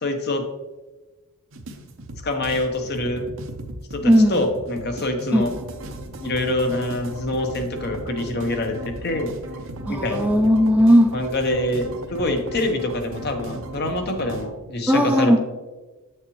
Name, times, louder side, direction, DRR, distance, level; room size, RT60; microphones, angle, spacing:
voice 1, 0.0-0.5 2.2-3.3 3.9-5.5 6.2-9.3 9.9-10.3 11.1-15.4, left 1 dB, 50° left, 5 dB, 0.9 m, -25 dB
sound 1, 1.5-14.5, right 1 dB, 60° right, 0.7 m, -36 dB
voice 2, 4.0-4.4 5.3-5.5 9.9-11.2 14.9-15.4, equal, 5° right, 4 dB, 0.4 m, -16 dB
8.0 x 6.5 x 3.0 m, 1.2 s
head